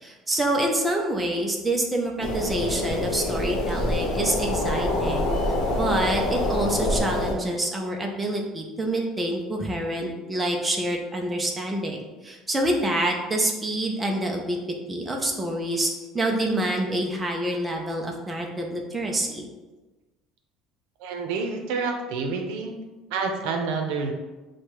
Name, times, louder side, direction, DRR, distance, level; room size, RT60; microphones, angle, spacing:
voice 1, 0.0-14.6 14.9-19.5, right 1 dB, 10° right, 0 dB, 0.4 m, -27 dB
sound 1, 2.2-7.3, left 1 dB, 55° left, 0.9 m, -25 dB
voice 2, 21.0-22.8 23.1-24.1, right 4 dB, 85° right, 4 dB, 0.6 m, -28 dB
6.4 x 2.2 x 3.0 m, 1.2 s
cardioid pair, 170°, 0 cm